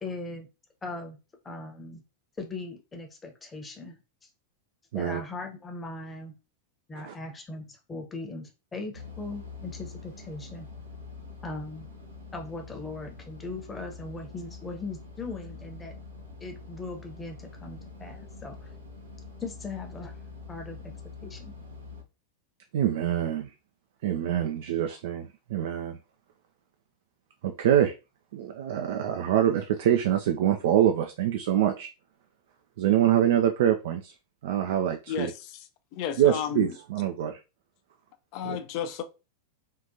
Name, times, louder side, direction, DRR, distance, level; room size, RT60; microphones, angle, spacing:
voice 1, 0.0-0.5 0.8-1.2 1.4-2.0 2.4-4.0 4.9-6.3 6.9-10.7 11.4-11.9 12.3-15.9 16.4-18.6 19.4-20.1 20.5-20.8 21.2-21.5, left 3 dB, 15° left, 0.9 m, -39 dB
sound 1, 8.9-22.0, left 4 dB, 80° right, 0.8 m, -45 dB
voice 2, 22.7-23.5 24.0-26.0 27.4-27.9 28.3-31.9 32.8-34.1 34.4-35.3 36.2-37.4 38.4-38.6, right 10 dB, 55° right, 0.3 m, -25 dB
voice 3, 35.1-35.7 35.9-36.7 38.3-39.0, left 9 dB, 45° left, 0.5 m, -33 dB
3.6 x 2.5 x 2.7 m
figure-of-eight pair, 90°, 0 cm